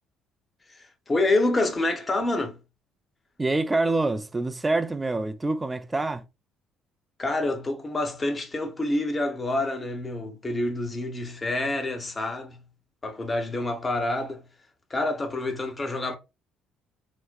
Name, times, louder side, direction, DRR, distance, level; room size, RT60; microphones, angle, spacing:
voice 1, 0.7-2.6 7.2-12.6 13.0-14.4 14.9-16.2, left 2 dB, 30° left, 0.8 m, -27 dB
voice 2, 3.4-6.2, right 2 dB, 20° right, 0.4 m, -26 dB
4.0 x 2.1 x 2.4 m
figure-of-eight pair, 50°, 0 cm